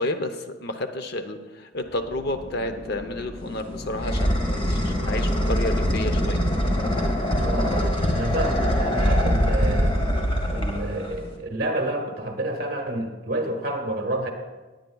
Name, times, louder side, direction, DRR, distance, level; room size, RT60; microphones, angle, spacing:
voice 1, 0.0-6.4, left 1 dB, 55° left, 8 dB, 0.7 m, -31 dB
sound 1, 1.8-11.7, left 1 dB, ahead, 2.3 m, -42 dB
sound 2, 3.4-11.4, equal, 25° left, 1.5 m, -23 dB
voice 2, 7.4-10.0 10.5-14.3, right 1 dB, 50° right, 3 dB, 1.3 m, -29 dB
19.0 x 9.2 x 2.3 m, 1.2 s
head